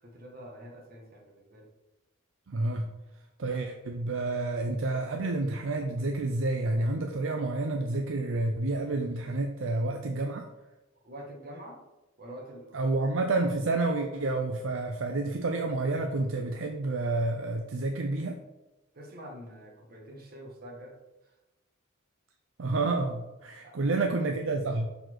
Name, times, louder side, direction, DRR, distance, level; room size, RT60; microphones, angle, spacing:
voice 1, 0.0-1.7 11.0-11.8 12.2-13.0 18.9-21.0 21.2-21.3 23.6-23.9, equal, 50° right, 0 dB, 1.5 m, -46 dB
voice 2, 2.5-2.9 3.4-10.5 12.7-18.4 22.6-24.9, right 2 dB, 65° right, 4 dB, 0.5 m, -29 dB
6.5 x 4.2 x 4.6 m, 1.0 s
head